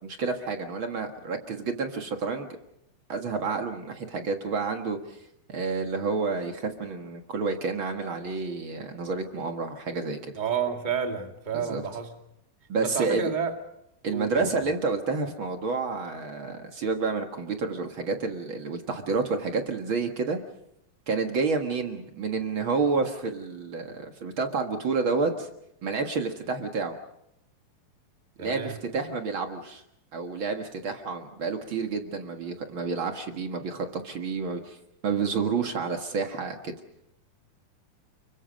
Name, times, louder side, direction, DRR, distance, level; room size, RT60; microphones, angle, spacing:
voice 1, 0.0-2.6 3.1-5.2 5.5-10.3 11.5-11.8 12.7-13.3 14.0-20.4 21.1-25.5 25.8-26.9 28.4-29.8 30.1-34.8 35.0-36.7, right 4 dB, 50° right, 5 dB, 1.6 m, -29 dB
voice 2, 10.3-12.1 12.8-13.5 14.1-14.5 28.4-28.8, right 6 dB, 20° right, 4 dB, 1.3 m, -30 dB
30.0 x 23.5 x 5.3 m, 0.78 s
omnidirectional pair, 4.6 m